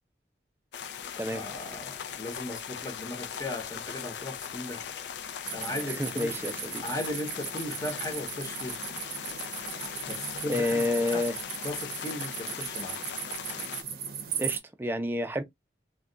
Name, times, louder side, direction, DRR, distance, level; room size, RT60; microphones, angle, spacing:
sound 1, 0.7-13.8, left 8 dB, 75° left, 0.4 m, -39 dB
voice 1, 1.3-4.9 5.4-6.4 6.8-8.8 10.1-11.3 11.6-13.0, left 1 dB, 20° left, 0.7 m, -37 dB
sound 2, 5.4-14.6, right 8 dB, 55° right, 0.6 m, -38 dB
voice 2, 5.8-6.8 10.5-11.4 14.4-15.4, left 1 dB, 10° right, 0.4 m, -29 dB
2.3 x 2.2 x 3.7 m
head